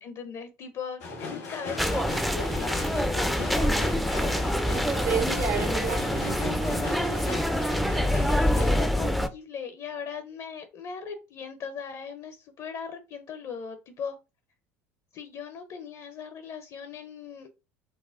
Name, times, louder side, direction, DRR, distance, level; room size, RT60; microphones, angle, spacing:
voice 1, 0.0-4.5 8.2-14.2 15.1-17.5, left 6 dB, 50° left, 0.6 m, -39 dB
sound 1, 1.0-8.9, left 3 dB, 90° left, 1.4 m, -37 dB
sound 2, 1.8-9.3, equal, ahead, 0.4 m, -26 dB
voice 2, 4.7-7.4, right 6 dB, 85° right, 1.4 m, -32 dB
4.1 x 2.1 x 2.4 m
hypercardioid pair, 75°, 8 cm